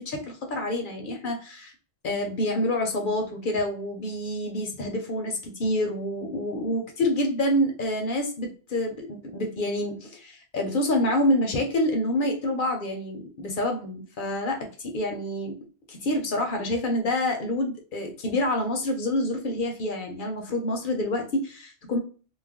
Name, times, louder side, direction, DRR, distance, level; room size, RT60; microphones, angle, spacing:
voice 1, 0.0-1.7 2.0-15.6 15.9-22.0, left 1 dB, 60° left, 3 dB, 0.7 m, -27 dB
2.4 x 2.1 x 3.4 m, 0.37 s
omnidirectional pair, 1.1 m